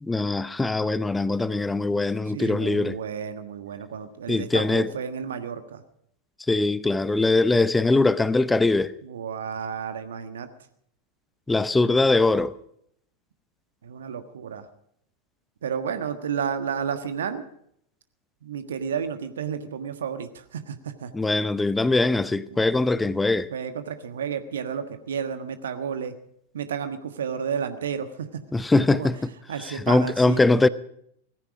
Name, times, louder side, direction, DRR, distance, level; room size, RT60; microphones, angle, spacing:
voice 1, 0.0-3.0 4.3-4.9 6.5-8.9 11.5-12.5 21.1-23.5 28.5-29.3 29.7-30.7, left 2 dB, 10° left, 0.7 m, -22 dB
voice 2, 2.3-5.8 9.0-10.5 13.8-14.7 15.6-17.4 18.4-21.1 22.7-22.8 23.5-26.1 26.5-28.4 28.8-29.1 29.5-30.4, right 7 dB, 65° right, 1.4 m, -32 dB
18.5 x 15.5 x 4.9 m
figure-of-eight pair, 90°, 0 cm